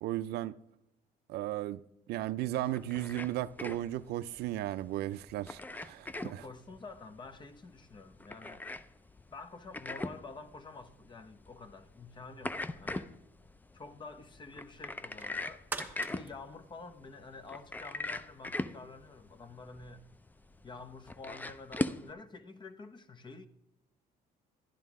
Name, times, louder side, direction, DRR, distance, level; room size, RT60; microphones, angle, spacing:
voice 1, 0.0-0.6 1.3-1.8 2.1-6.4, right 14 dB, 75° right, 0.4 m, -35 dB
sound 1, 2.6-22.1, left 2 dB, 10° left, 0.4 m, -41 dB
voice 2, 6.2-8.6 9.3-13.1 13.7-15.7 16.1-20.0 20.6-23.5, left 3 dB, 25° left, 0.8 m, -49 dB
sound 2, 14.9-17.6 18.1-18.2, right 3 dB, 10° right, 1.2 m, -44 dB
11.5 x 10.5 x 3.6 m
cardioid pair, 110°, 17 cm